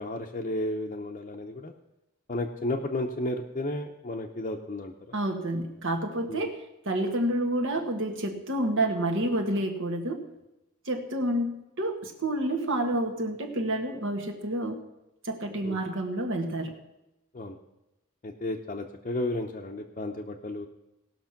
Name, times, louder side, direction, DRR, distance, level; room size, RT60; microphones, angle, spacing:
voice 1, 0.0-1.7 2.3-4.9 6.3-6.4 15.6-15.8 17.3-17.5 18.2-20.7, left 1 dB, 35° left, -1 dB, 0.8 m, -33 dB
voice 2, 5.1-10.3 10.8-14.8 15.2-16.7, right 1 dB, 65° right, 3 dB, 1.6 m, -29 dB
18.0 x 6.2 x 5.9 m, 0.94 s
head